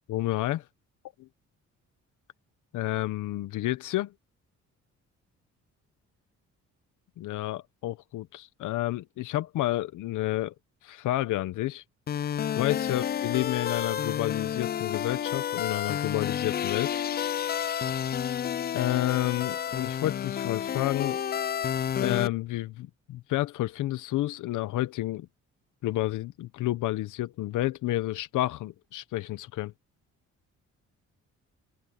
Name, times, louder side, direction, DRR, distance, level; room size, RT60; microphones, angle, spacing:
voice 1, 0.1-0.6 1.2-1.3 2.7-4.1 7.2-10.5 10.8-11.8 12.6-17.0 18.7-21.2 22.0-25.3 25.8-29.7, left 16 dB, 80° left, 0.9 m, -30 dB
sound 1, 12.1-22.3, left 9 dB, 35° left, 0.4 m, -30 dB
open air
cardioid pair, 90°, 30 cm